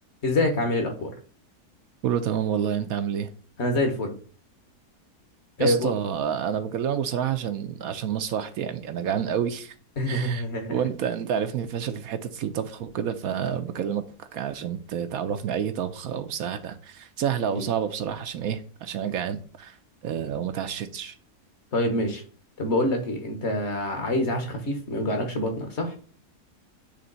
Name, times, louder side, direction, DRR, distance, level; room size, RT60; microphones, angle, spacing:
voice 1, 0.2-1.1 3.6-4.1 5.6-5.9 10.0-10.8 17.5-17.6 21.7-22.2 22.6-26.0, left 1 dB, 50° left, 1.4 m, -26 dB
voice 2, 2.0-3.3 5.6-9.7 10.1-10.4 10.7-19.8 20.0-21.2, right 8 dB, 70° right, 1.0 m, -29 dB
7.7 x 3.4 x 3.9 m
omnidirectional pair, 1.6 m